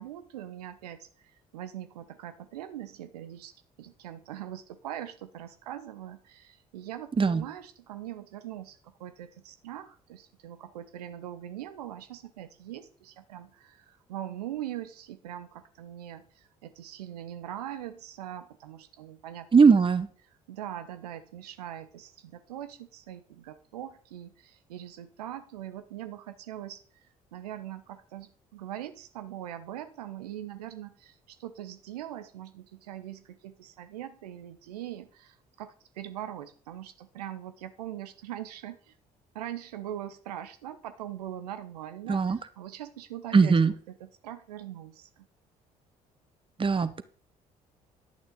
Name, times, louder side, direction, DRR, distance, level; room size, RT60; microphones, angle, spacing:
voice 1, 0.0-19.5 20.5-26.8 27.3-38.9 39.3-43.5 44.0-45.3, right 11 dB, 80° right, 11 dB, 0.9 m, -41 dB
voice 2, 19.5-20.1 42.1-42.4 43.3-43.7 46.6-47.0, right 5 dB, 25° right, 14 dB, 1.1 m, -20 dB
11.0 x 9.6 x 4.0 m, 0.43 s
figure-of-eight pair, 50°, 20 cm